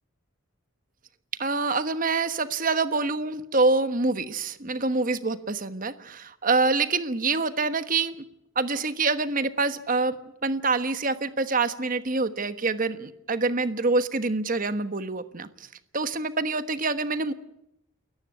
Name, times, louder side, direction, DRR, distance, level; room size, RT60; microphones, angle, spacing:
voice 1, 1.4-8.2 8.5-10.2 10.4-15.7 15.9-17.3, right 3 dB, 40° right, 11 dB, 1.2 m, -26 dB
29.0 x 14.5 x 9.7 m, 0.81 s
head